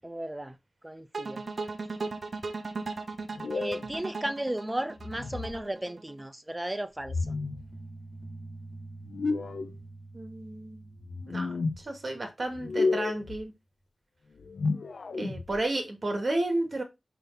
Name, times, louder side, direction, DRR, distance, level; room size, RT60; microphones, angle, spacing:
voice 1, 0.0-0.6 0.8-1.4 3.5-7.2, right 1 dB, 15° right, 0.8 m, -34 dB
sound 1, 1.1-6.2, right 3 dB, 65° right, 1.1 m, -37 dB
sound 2, 3.3-3.9 5.0-5.6 7.0-7.7 9.0-9.7 11.0-11.8 12.5-13.4 14.4-15.6, left 3 dB, 80° left, 0.7 m, -31 dB
sound 3, 7.2-12.2, right 2 dB, 40° left, 3.4 m, -46 dB
voice 2, 10.1-10.8 11.3-11.5 11.8-13.5 15.2-16.8, right 2 dB, 50° right, 2.5 m, -32 dB
5.5 x 5.5 x 4.1 m
wide cardioid pair, 95°, 0 cm